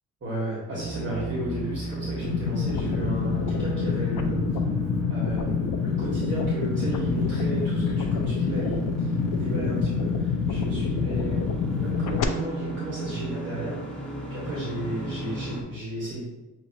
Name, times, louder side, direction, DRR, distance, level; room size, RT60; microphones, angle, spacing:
voice 1, 0.2-4.4 5.1-5.5 5.8-8.9 9.3-11.5 11.8-14.0 14.3-16.2, right 1 dB, 35° right, -8 dB, 1.4 m, -33 dB
sound 1, 0.7-15.6, right 3 dB, 5° left, 0.6 m, -33 dB
sound 2, 2.2-12.2, left 7 dB, 65° left, 0.5 m, -27 dB
6.1 x 2.9 x 2.8 m, 1.1 s
cardioid pair, 175°, 33 cm